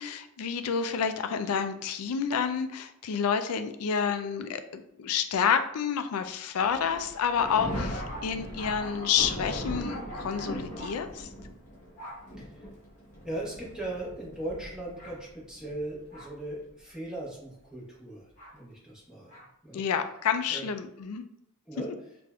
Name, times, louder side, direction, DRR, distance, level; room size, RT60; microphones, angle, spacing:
voice 1, 0.0-11.3 19.7-21.2, left 7 dB, 80° left, 9 dB, 0.4 m, -29 dB
Thunder, 6.6-16.5 17.3-17.4 18.4-18.5 19.3-19.5, equal, 35° left, 1.0 m, -39 dB
voice 2, 12.4-12.7 13.2-19.8 20.5-20.7 21.7-21.9, right 1 dB, 5° right, -7 dB, 1.1 m, -39 dB
4.9 x 2.5 x 2.2 m, 0.78 s
head